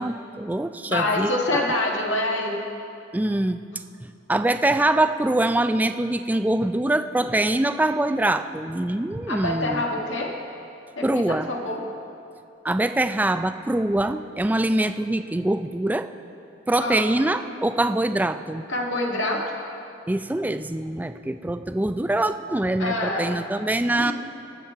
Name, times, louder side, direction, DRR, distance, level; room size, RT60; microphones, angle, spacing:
voice 1, 0.0-1.6 3.1-3.6 4.3-10.0 11.0-11.5 12.6-16.1 16.7-18.6 20.1-24.1, right 1 dB, 10° right, 10 dB, 0.3 m, -24 dB
voice 2, 0.9-2.6 9.3-10.3 11.0-11.8 16.8-17.1 18.7-19.4 22.8-23.3 23.9-24.1, left 2 dB, 85° left, -1 dB, 1.7 m, -26 dB
21.0 x 7.3 x 4.6 m, 2.6 s
head